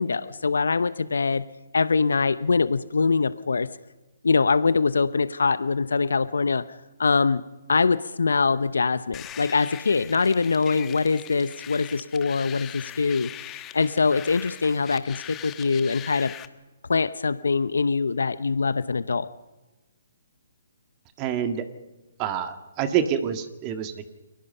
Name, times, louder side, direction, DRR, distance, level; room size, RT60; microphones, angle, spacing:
voice 1, 0.0-1.4 1.7-3.7 4.2-6.6 7.0-7.4 7.7-16.3 16.9-19.3, left 4 dB, 80° left, 15 dB, 0.8 m, -23 dB
sound 1, 9.1-16.5, left 12 dB, 20° left, 1.3 m, -41 dB
voice 2, 21.2-21.6 22.2-24.1, right 8 dB, 30° right, 8 dB, 1.9 m, -27 dB
30.0 x 22.5 x 5.6 m, 1.1 s
hypercardioid pair, 140°, 0 cm